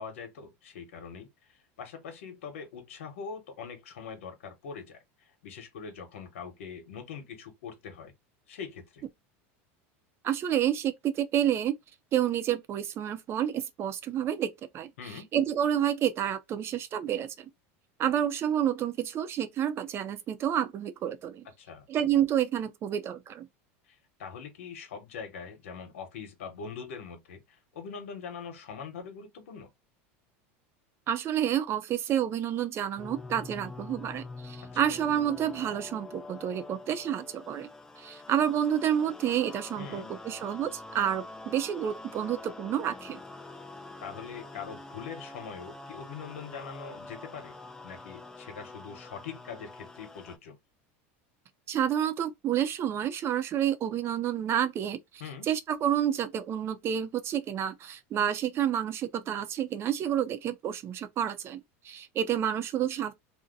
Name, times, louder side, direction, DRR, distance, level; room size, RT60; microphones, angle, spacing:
voice 1, 0.0-8.1 8.5-9.0 15.0-15.3 21.6-21.9 23.9-29.7 34.7-34.8 39.8-40.1 44.0-47.6 47.8-50.6 55.2-55.5, left 6 dB, 90° left, 1.0 m, -43 dB
voice 2, 10.2-11.8 12.1-17.5 18.0-21.4 21.9-23.5 31.1-37.7 38.0-43.2 51.7-55.0 55.4-63.1, right 10 dB, 35° right, 0.6 m, -29 dB
sound 1, 33.0-50.4, left 2 dB, 10° left, 0.4 m, -45 dB
2.7 x 2.1 x 3.8 m
supercardioid pair, 120°, 7 cm